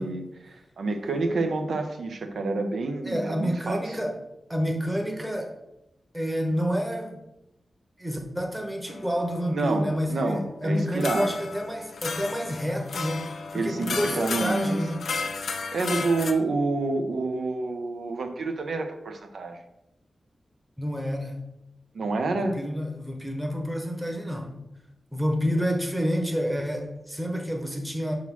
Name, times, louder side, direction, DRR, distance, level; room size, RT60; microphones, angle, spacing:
voice 1, 0.0-4.0 9.5-11.3 13.5-14.8 15.7-19.6 21.9-22.6, right 3 dB, 75° right, 5 dB, 0.8 m, -28 dB
voice 2, 3.0-4.2 4.5-5.5 6.1-7.2 8.0-15.0 20.8-21.4 22.3-24.6 25.1-28.1, equal, 5° right, 2 dB, 1.0 m, -29 dB
sound 1, 8.9-9.9 11.0-16.3, left 4 dB, 85° left, 0.7 m, -33 dB
6.0 x 3.8 x 6.0 m, 0.88 s
wide cardioid pair, 160°, 0 cm